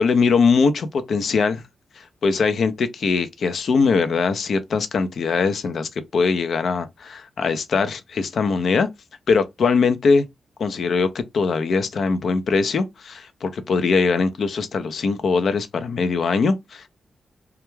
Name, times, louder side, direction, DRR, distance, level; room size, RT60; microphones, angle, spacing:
voice 1, 0.0-1.6 2.0-8.9 9.3-10.3 10.6-16.9, left 4 dB, 75° left, 0.4 m, -21 dB
2.3 x 2.1 x 3.0 m
cardioid pair, 55°, 0 cm